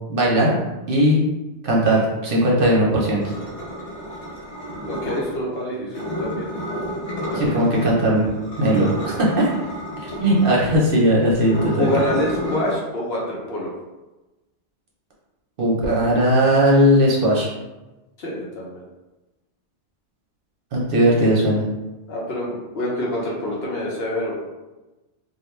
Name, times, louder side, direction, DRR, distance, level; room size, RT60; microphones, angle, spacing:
voice 1, 0.1-0.5 0.9-1.2 1.6-3.2 7.3-8.3 8.6-9.5 10.2-11.9 15.6-17.5 20.7-21.6, equal, 60° right, -4 dB, 0.7 m, -18 dB
sound 1, 3.2-5.4 5.9-7.9 8.2-12.7, equal, 80° left, 1.1 m, -31 dB
voice 2, 4.9-6.5 7.2-7.8 11.6-13.7 18.2-18.8 22.1-24.5, left 1 dB, 65° left, -4 dB, 0.9 m, -27 dB
2.4 x 2.2 x 3.0 m, 1.1 s
omnidirectional pair, 1.2 m